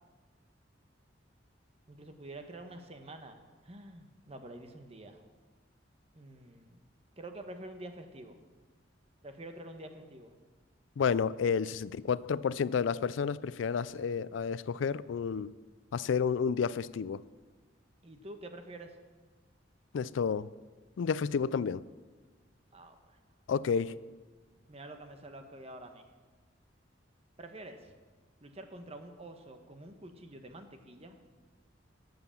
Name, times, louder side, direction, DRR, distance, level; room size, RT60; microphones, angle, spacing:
voice 1, 1.9-5.2 6.1-6.8 7.2-8.4 9.2-10.3 18.0-19.0 22.7-23.2 24.7-26.0 27.4-27.9 28.4-31.2, right 1 dB, 35° right, 1.1 m, -47 dB
voice 2, 11.0-15.5 15.9-17.2 19.9-20.5 21.0-21.8 23.5-23.9, left 6 dB, 80° left, 0.4 m, -30 dB
12.5 x 7.9 x 7.1 m
head